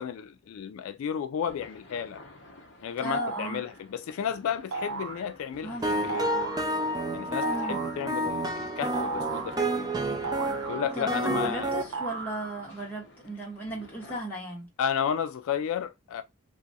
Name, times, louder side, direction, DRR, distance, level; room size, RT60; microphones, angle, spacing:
voice 1, 0.0-2.2 2.8-5.8 6.0-6.3 7.1-9.9 10.7-11.7 14.8-16.2, left 8 dB, 75° left, 0.3 m, -32 dB
sound 1, 1.5-14.2, left 1 dB, 55° left, 0.8 m, -51 dB
voice 2, 3.0-3.6 5.6-5.9 7.4-7.8 11.0-14.7, right 1 dB, 10° left, 1.2 m, -36 dB
sound 2, 3.1-3.7 4.7-5.3 6.1-6.7 7.4-8.0 8.9-9.6 10.2-11.2 11.9-12.8, right 3 dB, 75° right, 0.6 m, -35 dB
sound 3, 5.8-11.8, right 1 dB, 20° right, 0.3 m, -30 dB
2.9 x 2.4 x 2.7 m
head